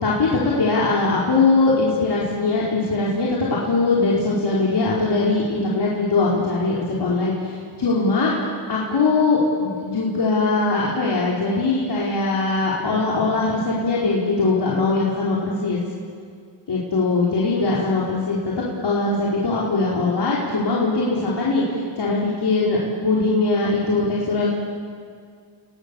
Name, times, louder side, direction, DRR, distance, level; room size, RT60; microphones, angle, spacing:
voice 1, 0.6-8.3 8.7-15.8 16.7-18.4 18.8-22.8 23.0-24.5, left 3 dB, 55° left, -6 dB, 5.0 m, -21 dB
29.5 x 19.5 x 7.4 m, 2.2 s
cardioid pair, 70°, 50 cm